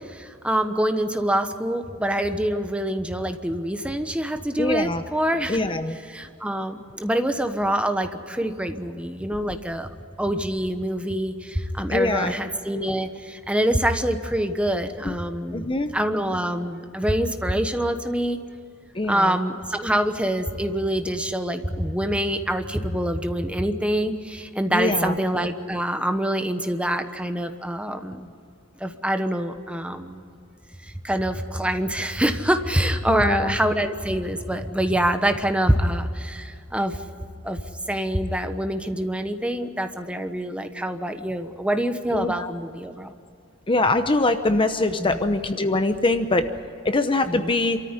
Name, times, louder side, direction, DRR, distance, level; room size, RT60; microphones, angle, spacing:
voice 1, 0.1-5.6 6.1-9.9 10.2-18.4 19.1-28.3 28.8-30.4 30.8-37.0 37.4-37.6 37.9-43.1 45.0-45.2 47.3-47.5, right 1 dB, 5° right, 7 dB, 1.1 m, -25 dB
voice 2, 4.6-5.0 5.5-6.0 11.9-12.3 15.0-15.1 15.5-15.9 18.9-19.3 24.7-25.2 33.1-33.5 42.1-42.5 43.7-46.5 46.8-47.8, left 2 dB, 25° left, 8 dB, 0.8 m, -23 dB
27.5 x 14.0 x 9.7 m, 2.5 s
head